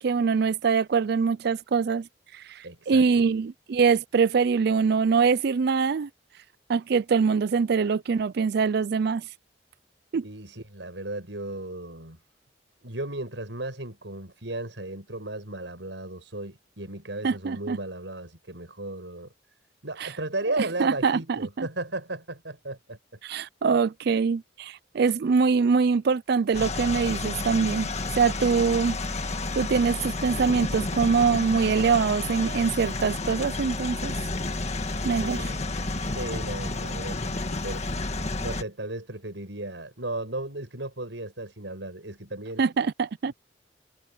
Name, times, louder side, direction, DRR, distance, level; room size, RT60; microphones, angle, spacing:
voice 1, 0.0-2.1 2.9-6.1 6.7-9.2 10.1-10.2 17.2-17.8 20.0-20.1 20.6-21.7 23.2-27.9 28.2-29.0 29.6-34.1 35.0-35.4 42.6-43.3, right 5 dB, 65° right, 0.4 m, -23 dB
voice 2, 2.6-3.3 10.2-12.2 12.8-19.3 19.8-23.0 35.2-35.7 36.1-42.6, right 2 dB, 90° right, 6.8 m, -35 dB
sound 1, 26.5-38.6, left 2 dB, 40° left, 1.7 m, -31 dB
head